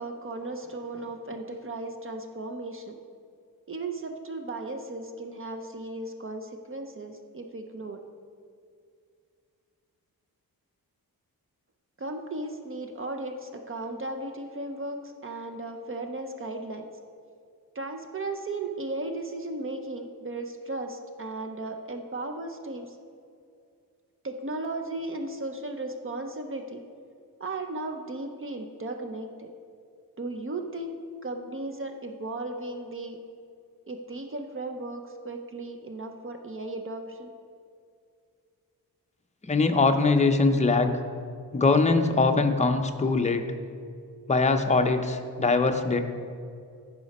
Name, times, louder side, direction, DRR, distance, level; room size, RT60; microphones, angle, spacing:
voice 1, 0.0-3.0 3.7-8.0 12.0-16.8 17.7-23.0 24.2-26.8 27.4-29.5 30.2-31.0 31.2-33.2 33.9-37.3, right 2 dB, 35° right, 5 dB, 0.5 m, -36 dB
voice 2, 39.4-41.0 41.5-43.5 44.3-46.0, left 3 dB, 20° left, 6 dB, 0.5 m, -22 dB
14.5 x 5.0 x 4.1 m, 2.3 s
wide cardioid pair, 145°, 37 cm